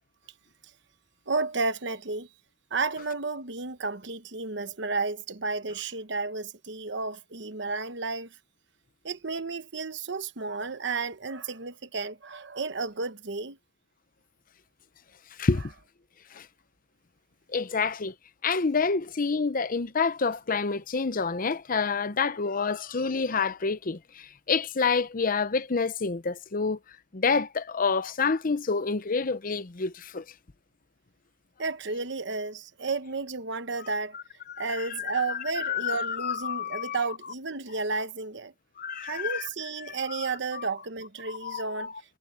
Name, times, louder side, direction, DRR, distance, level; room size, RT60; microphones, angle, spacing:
voice 1, 1.3-2.3 2.7-8.3 9.0-13.6 31.6-34.2 34.6-38.5 39.0-41.9, right 4 dB, 65° right, 1.1 m, -32 dB
voice 2, 17.5-18.1 18.4-24.0 24.5-26.8 27.1-30.2 34.5-37.0 38.8-39.4 39.9-40.2 40.5-40.6 41.3-41.9, left 5 dB, 45° left, 0.8 m, -28 dB
head